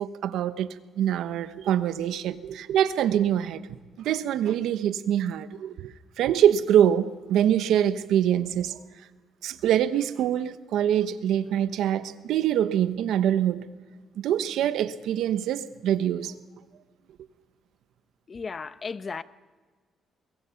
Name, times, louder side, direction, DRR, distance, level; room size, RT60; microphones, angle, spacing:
voice 1, 0.0-3.7 4.0-5.9 6.2-8.8 9.4-13.7 14.2-16.3, right 10 dB, 80° right, 1.0 m, -24 dB
voice 2, 18.3-19.2, left 5 dB, 40° left, 0.8 m, -35 dB
22.5 x 20.5 x 5.8 m
cardioid pair, 90°, 0 cm